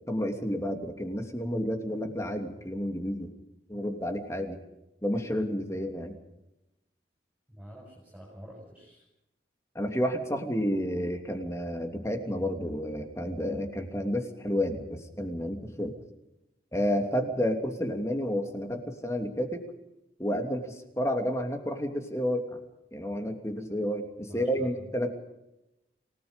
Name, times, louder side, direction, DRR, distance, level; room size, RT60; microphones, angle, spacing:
voice 1, 0.0-3.3 3.7-4.6 5.0-6.1 9.7-15.9 16.7-19.6 20.2-22.6 22.9-25.1, equal, 15° left, 4 dB, 2.9 m, -30 dB
voice 2, 7.5-9.0 24.3-24.9, equal, 5° right, -2 dB, 6.8 m, -48 dB
28.5 x 19.0 x 5.3 m, 0.91 s
head